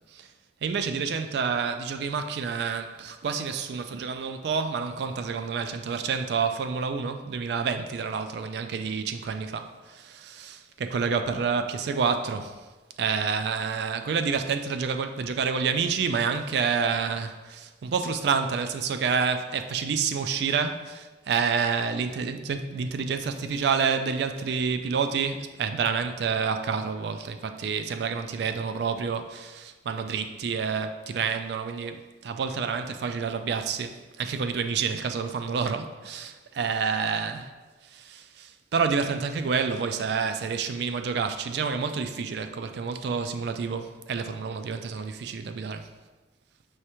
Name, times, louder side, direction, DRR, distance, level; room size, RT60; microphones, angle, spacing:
voice 1, 0.6-12.6 13.0-37.5 37.8-45.9, right 5 dB, 60° right, 8 dB, 0.3 m, -28 dB
4.8 x 3.2 x 2.9 m, 1.2 s
head